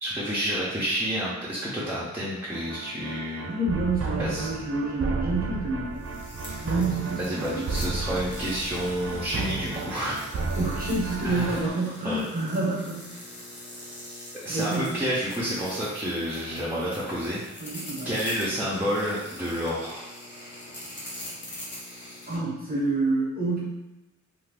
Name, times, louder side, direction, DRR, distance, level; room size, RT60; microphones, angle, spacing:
voice 1, 0.0-3.5 4.2-4.5 7.2-10.2 11.2-11.6 12.0-12.2 14.4-17.4 18.0-20.0, equal, 5° right, -9 dB, 0.7 m, -29 dB
sound 1, 2.5-11.7, right 3 dB, 50° right, 0.5 m, -33 dB
voice 2, 3.5-6.0 6.6-7.6 10.6-13.1 14.5-15.0 17.6-18.1 22.3-23.6, right 2 dB, 30° right, -5 dB, 1.0 m, -28 dB
Damp Electric Shock, 5.9-22.4, left 1 dB, 40° left, 0.8 m, -43 dB
2.7 x 2.4 x 3.3 m, 0.99 s
wide cardioid pair, 100°, 29 cm